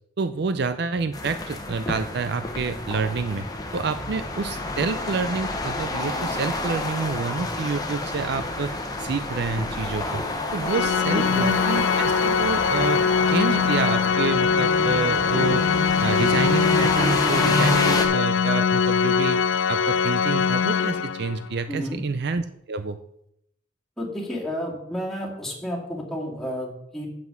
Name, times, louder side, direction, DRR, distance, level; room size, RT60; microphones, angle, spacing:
voice 1, 0.2-3.5 3.7-8.7 9.0-10.2 10.5-13.0 13.3-15.7 16.0-19.4 19.7-23.0, right 4 dB, 60° right, 10 dB, 0.5 m, -28 dB
sound 1, 1.1-18.1, left 2 dB, 20° left, 1.0 m, -28 dB
Organ, 10.7-21.5, left 6 dB, 75° left, 0.4 m, -22 dB
voice 2, 11.1-11.4 21.7-22.0 24.0-27.1, equal, ahead, -4 dB, 2.3 m, -31 dB
7.6 x 5.9 x 7.2 m, 0.76 s
head